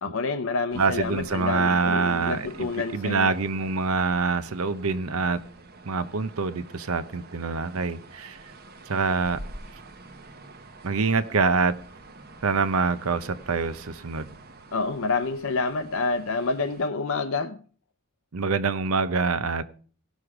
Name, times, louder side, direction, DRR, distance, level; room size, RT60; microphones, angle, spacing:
voice 1, 0.0-3.3 14.7-17.6, left 3 dB, 60° left, 7 dB, 0.6 m, -28 dB
sound 1, 0.7-16.9, right 2 dB, 45° right, 1.0 m, -47 dB
voice 2, 0.7-5.4 5.9-8.4 8.9-9.4 10.8-11.7 12.4-14.3 18.3-19.6, right 4 dB, 75° right, 13 dB, 0.8 m, -25 dB
16.5 x 6.4 x 4.9 m, 0.42 s
head